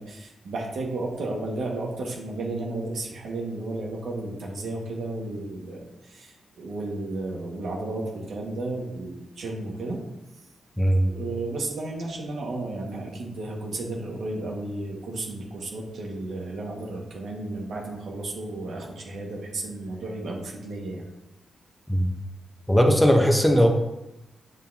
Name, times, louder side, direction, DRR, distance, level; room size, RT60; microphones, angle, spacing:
voice 1, 0.0-10.0 10.9-21.0, right 2 dB, 75° right, -1 dB, 1.8 m, -33 dB
voice 2, 10.8-11.1 21.9-22.1 22.7-23.7, equal, 5° left, 2 dB, 1.0 m, -18 dB
7.5 x 7.1 x 2.9 m, 0.95 s
cardioid pair, 90°, 0 cm